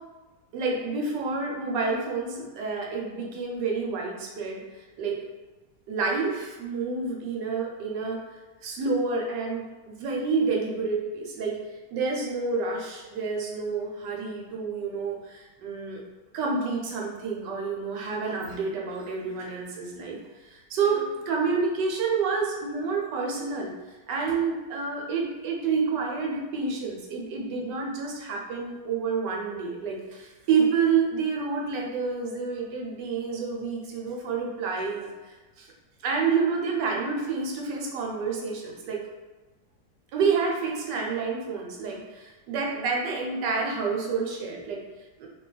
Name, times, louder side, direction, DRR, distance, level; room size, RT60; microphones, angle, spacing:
voice 1, 0.5-5.2 5.9-11.6 11.9-16.0 16.3-20.2 20.4-23.7 24.1-35.7 36.0-39.0 40.1-44.8 45.2-45.3, right 4 dB, 85° right, -1 dB, 1.3 m, -29 dB
3.0 x 2.3 x 3.9 m, 1.2 s
omnidirectional pair, 1.8 m